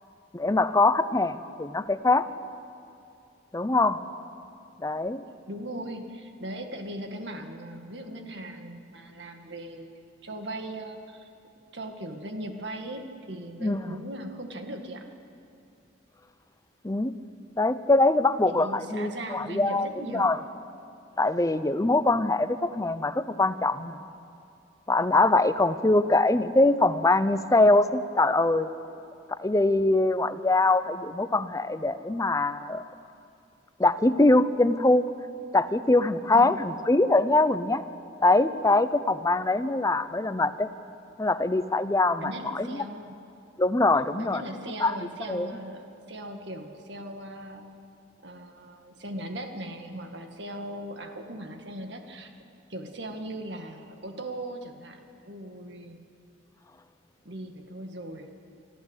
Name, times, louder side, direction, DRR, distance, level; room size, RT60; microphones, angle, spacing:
voice 1, 0.3-2.3 3.5-4.0 4.8-5.2 13.6-13.9 16.8-17.1 17.6-20.4 21.2-24.0 24.9-28.7 29.3-32.8 33.8-35.0 35.5-37.8 38.2-40.7 41.2-42.8 43.6-44.4 44.8-45.0 45.3-45.5, left 2 dB, 20° left, 13 dB, 0.6 m, -23 dB
voice 2, 5.5-9.9 10.2-11.3 11.7-15.1 18.4-20.3 36.3-36.6 42.2-43.2 44.2-47.6 48.2-52.3 52.7-55.0 55.2-56.0 57.2-58.3, right 1 dB, 65° right, 5 dB, 2.0 m, -39 dB
25.0 x 14.0 x 8.3 m, 2.5 s
head